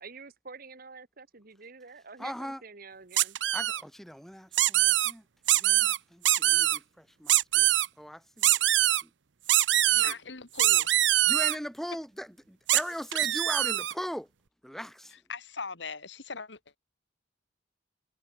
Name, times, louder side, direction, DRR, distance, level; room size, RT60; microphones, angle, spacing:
voice 1, 0.0-3.4, right 4 dB, 50° right, 1.7 m, -48 dB
voice 2, 2.2-2.6 3.5-5.2 5.5-7.7 8.0-8.6 9.0-9.1 10.0-10.2 11.3-14.3 14.6-15.1, equal, ahead, 4.2 m, -39 dB
sound 1, 3.2-3.8 4.5-5.1 5.5-6.0 6.2-6.8 7.3-7.9 8.4-9.0 9.5-10.1 10.6-11.6 12.7-12.8 13.1-13.9, right 14 dB, 75° right, 0.7 m, -23 dB
voice 3, 9.9-10.9 11.5-11.6 15.3-16.8, left 4 dB, 70° left, 2.2 m, -40 dB
head